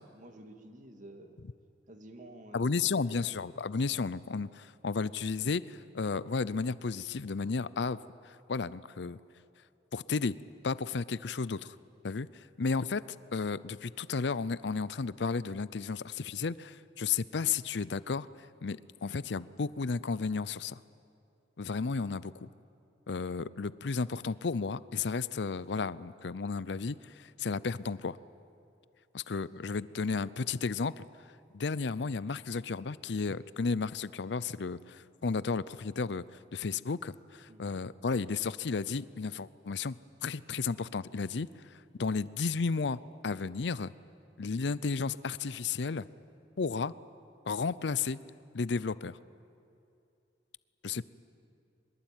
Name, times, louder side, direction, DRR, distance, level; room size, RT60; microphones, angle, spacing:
voice 1, 0.0-1.4 1.9-3.4 37.5-37.8, right 1 dB, 45° right, 6 dB, 2.1 m, -51 dB
voice 2, 2.5-8.0 8.2-9.2 9.9-10.4 10.6-11.8 12.0-13.0 13.3-18.3 18.6-20.8 21.6-22.5 23.1-28.2 29.1-31.0 31.5-41.5 42.0-43.9 44.4-46.1 46.6-46.9 47.5-48.2 48.5-49.2 50.8-51.0, left 4 dB, 65° left, 18 dB, 0.6 m, -33 dB
23.0 x 21.5 x 9.1 m, 2.6 s
head